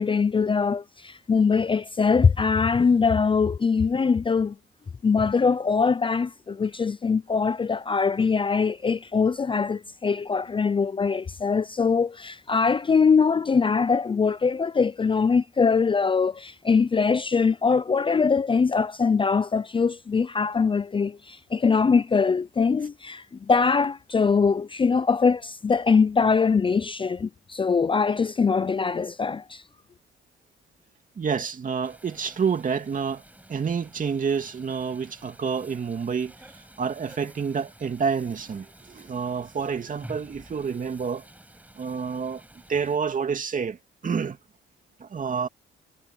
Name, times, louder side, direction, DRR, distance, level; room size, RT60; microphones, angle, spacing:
voice 1, 0.0-4.6 5.0-29.6, left 5 dB, 25° left, 0.5 m, -22 dB
voice 2, 31.2-33.2 33.5-36.5 36.8-41.3 41.8-42.4 42.7-43.8 44.0-44.4 45.0-45.5, right 6 dB, 40° right, 2.6 m, -28 dB
sound 1, 31.8-43.0, right 1 dB, 10° right, 6.5 m, -50 dB
cardioid pair, 90°, 20 cm